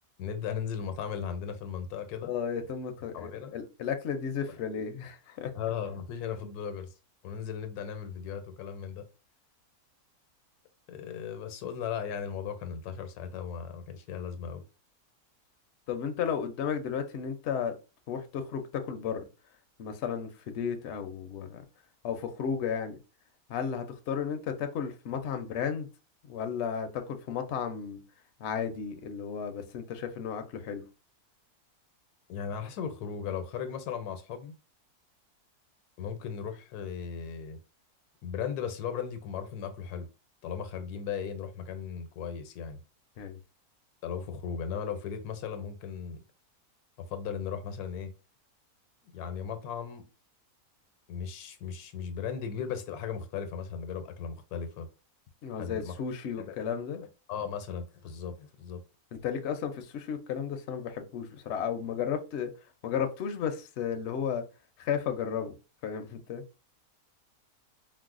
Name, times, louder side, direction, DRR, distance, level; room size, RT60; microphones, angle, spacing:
voice 1, 0.2-2.3 3.1-3.5 5.5-6.9 7.2-9.1 10.9-14.6 32.3-34.5 36.0-37.6 38.2-40.1 40.4-42.8 44.0-46.2 47.0-48.1 49.0-50.0 51.1-54.9 55.6-55.9 56.4-56.5 57.3-58.8, left 7 dB, 85° left, 1.1 m, -37 dB
voice 2, 2.2-5.5 15.9-17.8 18.1-19.3 19.8-21.6 22.0-23.0 23.5-25.9 26.2-28.0 28.4-30.8 43.2-43.4 55.4-57.1 59.1-62.5 62.8-64.5 64.8-65.6 65.8-66.4, left 7 dB, 65° left, 0.7 m, -33 dB
4.6 x 2.0 x 2.4 m
omnidirectional pair, 1.6 m